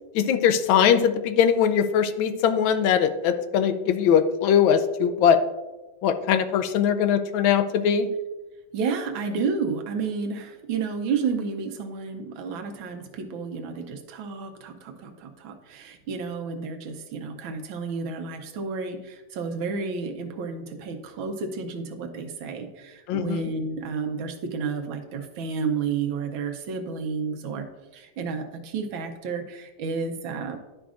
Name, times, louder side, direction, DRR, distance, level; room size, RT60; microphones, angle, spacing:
voice 1, 0.1-5.4 6.0-8.1 23.1-23.5, left 8 dB, 90° left, 9 dB, 1.4 m, -21 dB
voice 2, 8.7-27.7 27.9-30.6, right 5 dB, 85° right, 5 dB, 1.6 m, -31 dB
11.0 x 5.1 x 2.5 m, 1.1 s
omnidirectional pair, 2.1 m